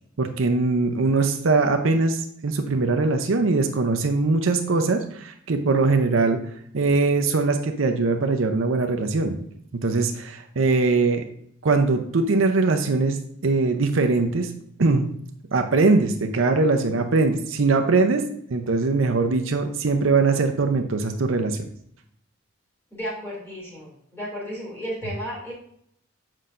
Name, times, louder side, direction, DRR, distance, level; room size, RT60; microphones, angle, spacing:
voice 1, 0.2-6.4 6.7-9.4 9.8-11.2 11.6-13.2 13.4-14.5 14.8-15.1 15.5-21.6, right 3 dB, 70° right, 6 dB, 0.6 m, -21 dB
voice 2, 22.9-25.5, equal, 10° left, -4 dB, 2.7 m, -33 dB
7.5 x 5.5 x 2.5 m, 0.69 s
head